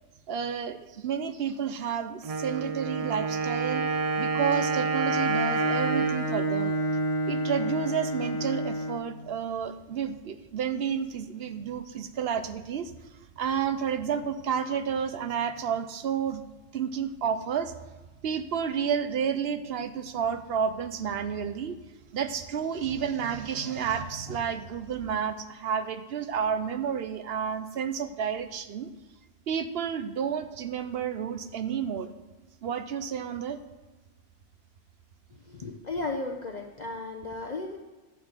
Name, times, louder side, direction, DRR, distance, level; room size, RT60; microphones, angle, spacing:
voice 1, 0.3-3.8 4.2-6.8 7.3-12.9 13.4-16.4 16.7-17.7 18.2-21.8 22.1-28.9 29.5-32.1 32.6-33.6, right 7 dB, 65° right, 10 dB, 0.9 m, -30 dB
Wind instrument woodwind instrument, 2.2-8.0, right 4 dB, 40° right, 0.6 m, -29 dB
Bowed string instrument, 5.1-9.2, equal, 65° left, 1.5 m, -31 dB
voice 2, 35.5-37.8, left 3 dB, 40° left, 1 dB, 0.9 m, -34 dB
11.0 x 4.3 x 7.9 m, 1.2 s
omnidirectional pair, 1.2 m